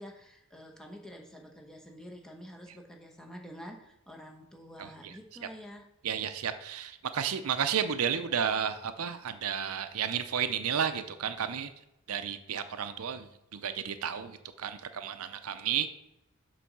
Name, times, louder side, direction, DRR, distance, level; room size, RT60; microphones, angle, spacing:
voice 1, 0.0-5.9, equal, 5° left, 1 dB, 1.0 m, -48 dB
voice 2, 4.8-5.1 6.0-11.7 12.1-15.9, right 8 dB, 90° right, 10 dB, 0.6 m, -32 dB
7.0 x 4.0 x 6.0 m, 0.85 s
head